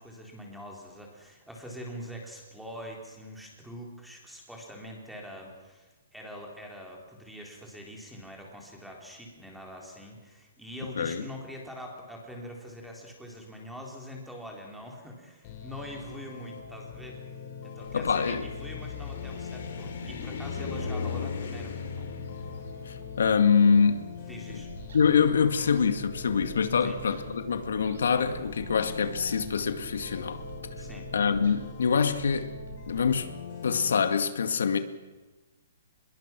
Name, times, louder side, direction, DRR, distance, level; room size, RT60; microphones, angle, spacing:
voice 1, 0.0-17.2 17.6-22.1 24.3-24.7 26.8-27.0 30.8-31.1, equal, ahead, 0 dB, 3.7 m, -44 dB
sound 1, 15.4-34.1, left 6 dB, 35° left, 4.7 m, -43 dB
sound 2, 17.8-24.9, left 5 dB, 60° left, 4.4 m, -37 dB
voice 2, 17.9-18.4 22.9-24.0 24.9-30.4 31.1-32.5 32.9-33.3 33.6-34.8, left 6 dB, 85° left, 8 dB, 2.1 m, -25 dB
sound 3, 24.5-33.2, right 6 dB, 70° right, 6.8 m, -46 dB
25.0 x 21.5 x 6.2 m, 1.2 s
hypercardioid pair, 170°, 0 cm